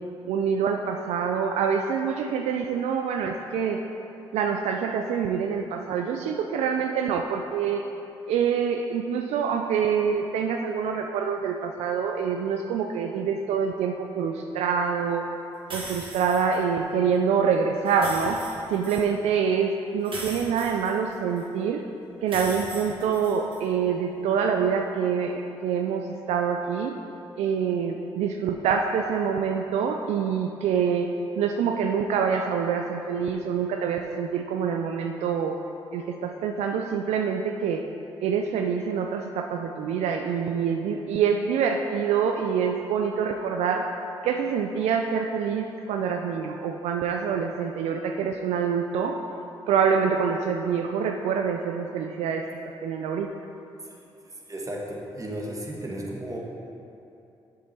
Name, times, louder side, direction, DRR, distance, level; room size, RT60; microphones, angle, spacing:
voice 1, 0.3-3.8 4.3-7.9 8.3-15.2 15.7-18.4 18.7-21.8 22.2-26.9 27.4-31.1 31.4-35.6 35.9-37.8 38.2-43.9 44.2-49.2 49.7-53.3, right 6 dB, 80° right, 4 dB, 0.4 m, -26 dB
sound 1, 15.7-16.6 17.9-19.1 20.1-21.4 22.3-23.6, right 2 dB, 50° right, 2.1 m, -39 dB
voice 2, 54.4-56.4, right 1 dB, 30° right, -2 dB, 1.7 m, -34 dB
7.6 x 6.9 x 4.4 m, 2.7 s
supercardioid pair, 50°, 11 cm